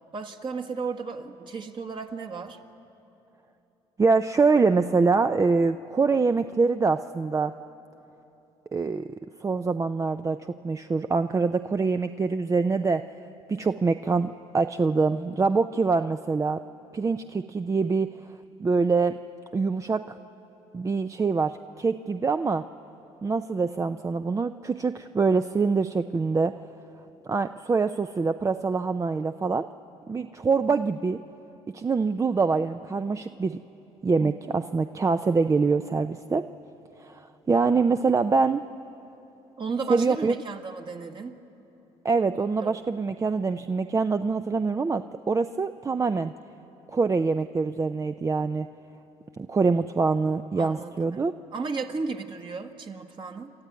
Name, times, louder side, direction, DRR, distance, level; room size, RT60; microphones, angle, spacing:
voice 1, 0.1-2.6 34.2-34.5 39.6-41.3 42.6-42.8 50.5-53.5, right 4 dB, 40° right, 5 dB, 1.7 m, -34 dB
voice 2, 4.0-7.5 8.7-9.1 9.4-13.0 13.5-16.6 16.9-18.1 18.6-19.2 19.5-20.2 20.7-22.6 23.2-26.6 27.3-29.7 30.1-31.2 31.7-33.6 34.0-36.5 37.0-38.6 39.9-40.3 42.0-46.3 46.9-48.7 49.4-51.3, right 4 dB, 25° right, 10 dB, 0.5 m, -24 dB
27.0 x 13.0 x 9.4 m, 3.0 s
supercardioid pair, 75°, 12 cm